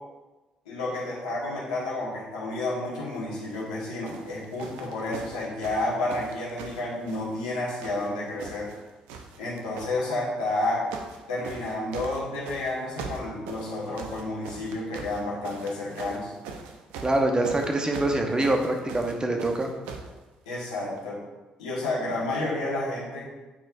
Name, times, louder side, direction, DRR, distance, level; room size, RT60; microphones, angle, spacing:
voice 1, 0.6-8.7 9.4-10.9 11.3-16.3 20.4-21.2 21.6-23.3, left 2 dB, 90° left, -5 dB, 1.5 m, -30 dB
sound 1, 3.4-3.7 4.0-7.5 7.8-8.8 9.1-9.9 10.6-11.2 11.4-20.1 21.0-21.1, right 5 dB, 80° right, 0.6 m, -41 dB
voice 2, 17.0-19.7, right 2 dB, 25° right, 3 dB, 1.1 m, -25 dB
8.9 x 4.4 x 2.6 m, 1.1 s
hypercardioid pair, 50°, 3 cm